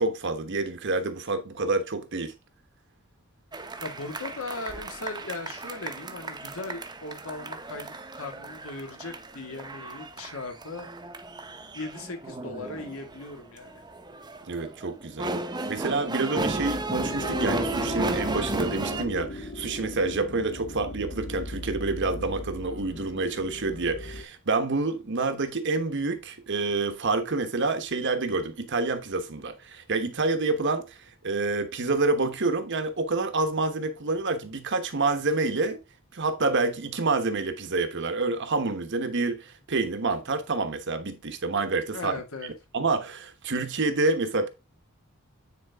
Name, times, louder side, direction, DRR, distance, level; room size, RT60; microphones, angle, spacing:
voice 1, 0.0-2.3 14.5-15.3 15.7-31.0 31.2-35.8 36.1-42.2 42.7-44.5, right 3 dB, 60° right, 1.2 m, -28 dB
sound 1, 3.5-19.0, right 2 dB, 20° right, 0.9 m, -34 dB
voice 2, 3.8-10.9 11.7-13.8 41.9-42.5, left 3 dB, 75° left, 2.1 m, -38 dB
sound 2, 17.0-24.2, left 1 dB, 45° left, 1.7 m, -37 dB
9.4 x 4.4 x 3.6 m
head